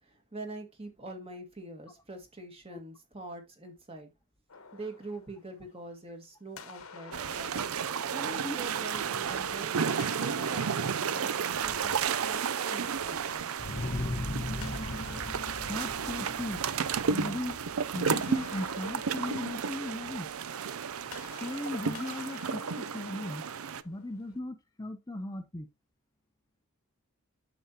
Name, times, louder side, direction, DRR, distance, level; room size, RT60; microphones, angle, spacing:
voice 1, 0.0-4.1 4.7-7.5 8.1-13.4 13.7-13.8, right 2 dB, 25° right, 1.9 m, -44 dB
sound 1, 4.5-6.1 6.6-9.3 9.9-12.8 14.6-17.4 17.7-24.4, left 5 dB, 75° left, 1.2 m, -50 dB
sound 2, 7.1-23.8, right 6 dB, 75° right, 0.5 m, -32 dB
sound 3, 13.6-19.1, left 1 dB, 35° left, 1.0 m, -38 dB
voice 2, 15.7-16.7 17.1-17.6 17.9-20.3 21.4-23.4 23.8-25.7, left 1 dB, 15° left, 0.6 m, -37 dB
9.1 x 7.0 x 2.8 m
head